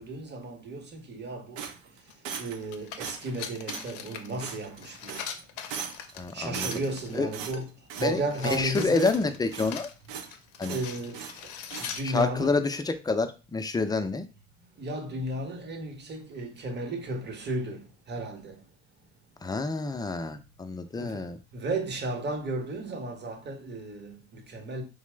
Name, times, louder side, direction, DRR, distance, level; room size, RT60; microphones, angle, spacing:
voice 1, 0.0-1.6 2.4-5.2 6.3-7.6 8.0-9.1 10.6-11.2 11.9-12.6 14.8-18.5 21.0-21.2 21.5-24.8, right 2 dB, 35° right, 0.9 m, -34 dB
sound 1, 1.6-2.7 3.0-3.4 3.7-3.9 4.4-4.8 5.1-5.4 5.7-6.1 6.5-7.0 7.3-8.2 8.4-8.7 9.0-9.8 10.1-10.3 10.6-11.4 11.7-11.9, right 7 dB, 85° right, 0.5 m, -39 dB
sound 2, 2.1-2.2 2.5-7.7 8.0-12.2, left 8 dB, 85° left, 0.5 m, -42 dB
voice 2, 6.2-6.7 7.1-7.3 8.0-8.2 8.5-9.9 10.6-10.8 12.0-14.3 19.4-21.4, left 3 dB, 15° left, 0.4 m, -28 dB
2.9 x 2.0 x 3.3 m
hypercardioid pair, 65°, 32 cm